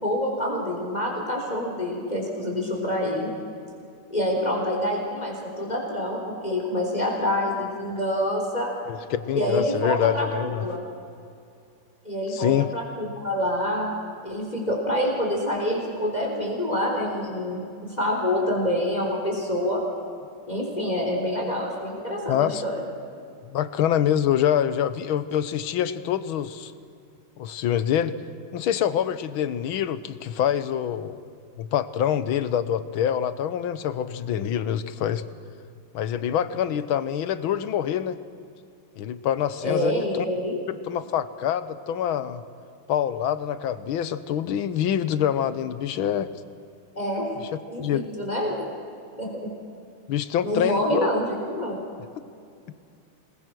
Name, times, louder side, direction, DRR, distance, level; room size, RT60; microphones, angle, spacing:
voice 1, 0.0-3.3 4.1-8.7 9.3-10.8 12.0-13.9 14.2-19.8 20.5-22.8 39.6-40.6 47.0-47.3 47.7-48.7 49.2-49.5 50.4-51.8, left 1 dB, 20° left, -1 dB, 4.1 m, -27 dB
voice 2, 8.9-10.7 12.3-12.7 22.3-22.6 23.4-26.7 27.4-28.2 28.5-31.2 31.6-35.2 35.9-38.2 39.0-40.3 40.8-42.4 42.9-46.3 47.8-48.1 50.1-51.1, left 9 dB, 80° left, 13 dB, 1.7 m, -25 dB
27.0 x 21.0 x 6.2 m, 2.5 s
omnidirectional pair, 2.2 m